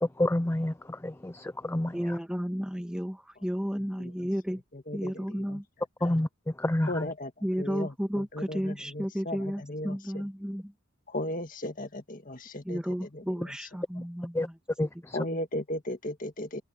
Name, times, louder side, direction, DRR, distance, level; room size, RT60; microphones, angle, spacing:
voice 1, 0.0-2.2 6.0-6.3 6.6-7.1 14.3-14.5 14.8-15.2, left 1 dB, 10° left, 0.4 m, -29 dB
voice 2, 1.9-4.6 4.9-5.6 7.4-10.7 12.6-14.6 15.2-15.4, equal, 5° right, 1.4 m, -33 dB
voice 3, 6.9-7.3 7.6-7.9 8.4-10.0 11.1-12.8 15.1-16.6, left 1 dB, 40° left, 1.9 m, -35 dB
open air
head